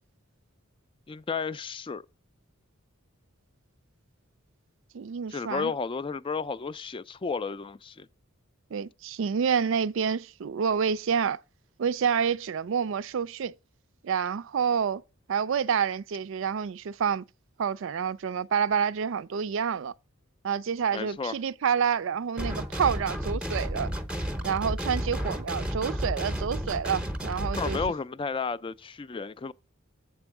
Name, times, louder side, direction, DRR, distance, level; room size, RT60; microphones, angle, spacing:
voice 1, 1.1-2.0 5.3-8.1 20.9-21.4 27.6-29.5, left 5 dB, 25° left, 0.3 m, -32 dB
voice 2, 4.9-5.7 8.7-11.4 11.8-13.5 14.0-15.0 15.3-17.2 17.6-19.9 20.4-23.9 24.4-27.8, right 7 dB, 65° right, 0.4 m, -28 dB
sound 1, 22.4-27.9, equal, 5° right, 0.7 m, -32 dB
7.7 x 4.4 x 5.9 m
head